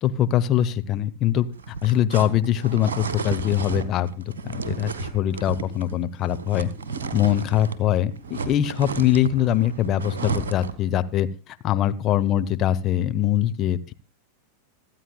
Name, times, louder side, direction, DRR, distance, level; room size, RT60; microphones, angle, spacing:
voice 1, 0.0-6.7 7.1-13.9, left 11 dB, 35° left, 11 dB, 0.8 m, -23 dB
sound 1, 1.5-10.8, right 4 dB, 65° right, 1.3 m, -33 dB
26.5 x 9.2 x 2.3 m, 0.32 s
figure-of-eight pair, 90°, 0 cm